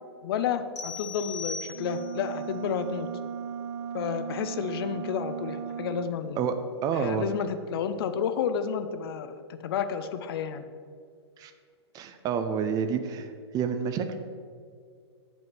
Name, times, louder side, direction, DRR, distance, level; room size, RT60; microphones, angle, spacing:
voice 1, 0.2-3.1 3.9-6.4 6.9-9.3 9.6-10.6, left 7 dB, 55° left, 10 dB, 0.6 m, -31 dB
sound 1, 0.8-2.3, left 4 dB, 85° left, 1.5 m, -38 dB
sound 2, 1.7-6.2, right 7 dB, 75° right, 0.6 m, -36 dB
voice 2, 6.8-7.3 11.4-11.5 11.9-14.2, right 7 dB, 25° right, 8 dB, 0.6 m, -29 dB
7.8 x 5.3 x 6.0 m, 2.1 s
hypercardioid pair, 125°, 15 cm